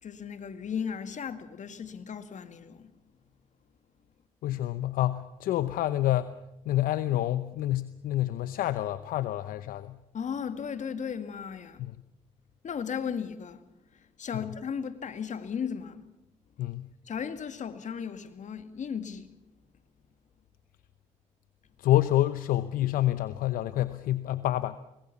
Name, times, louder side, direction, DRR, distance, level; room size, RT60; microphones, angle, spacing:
voice 1, 0.0-2.9 10.1-11.8 12.6-13.6 14.2-16.0 17.1-19.3, left 7 dB, 55° left, 2.1 m, -35 dB
voice 2, 4.4-6.3 6.7-10.0 11.8-11.9 14.3-14.5 16.6-16.9 21.8-24.8, left 14 dB, 75° left, 0.8 m, -28 dB
25.0 x 20.0 x 7.0 m
supercardioid pair, 55°, 14 cm